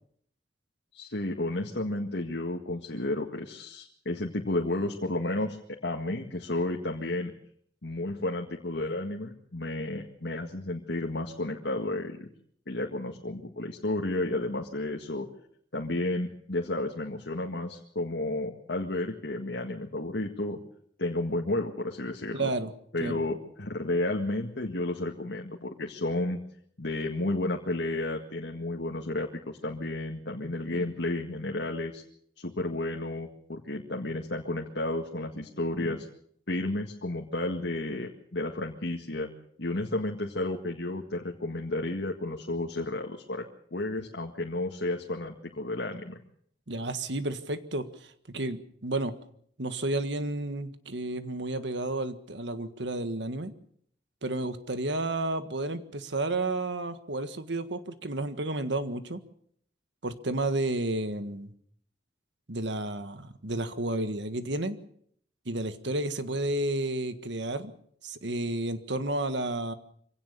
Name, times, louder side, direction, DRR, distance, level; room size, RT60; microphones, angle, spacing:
voice 1, 0.9-7.3 7.8-12.3 12.7-15.3 15.7-20.6 21.0-22.5 22.9-26.4 26.8-32.0 32.4-36.1 36.5-39.3 39.6-43.4 43.7-46.2, left 2 dB, 75° left, 1 dB, 1.9 m, -32 dB
voice 2, 22.3-22.7 23.0-23.2 46.7-49.1 49.6-53.5 54.2-59.2 60.0-61.5 62.5-64.8 65.4-67.7 68.0-69.7, right 2 dB, 75° right, 10 dB, 1.7 m, -31 dB
25.0 x 17.0 x 6.8 m, 0.65 s
head